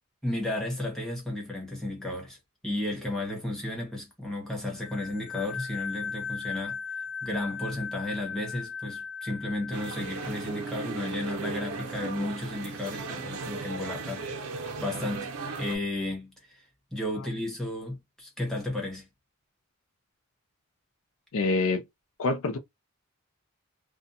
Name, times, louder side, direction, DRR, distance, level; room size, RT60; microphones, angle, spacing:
voice 1, 0.2-2.4 2.6-6.8 7.2-15.3 15.6-16.6 16.9-19.1, left 1 dB, ahead, 1.0 m, -33 dB
sound 1, 4.8-11.2, left 6 dB, 55° left, 1.0 m, -38 dB
sound 2, 9.7-15.8, right 4 dB, 85° right, 0.6 m, -36 dB
voice 2, 21.3-21.8 22.2-22.6, left 3 dB, 75° left, 0.5 m, -26 dB
2.5 x 2.2 x 2.6 m
head